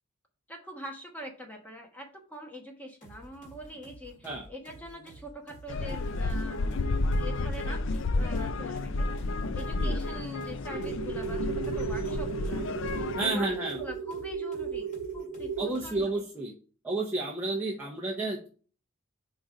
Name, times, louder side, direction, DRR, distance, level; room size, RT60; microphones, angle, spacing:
voice 1, 0.5-6.8 7.1-9.1 9.5-12.7 12.9-14.9 15.1-16.2, equal, 5° left, 1 dB, 1.2 m, -43 dB
sound 1, 3.0-16.1, right 1 dB, 35° left, 2.0 m, -52 dB
sound 2, 5.7-13.3, left 2 dB, 55° left, 0.4 m, -31 dB
sound 3, 10.7-15.7, right 6 dB, 75° left, 3.5 m, -35 dB
voice 2, 13.2-13.8 15.6-16.5 16.8-18.5, right 2 dB, 10° right, -3 dB, 0.7 m, -31 dB
5.2 x 4.0 x 4.7 m, 0.40 s
head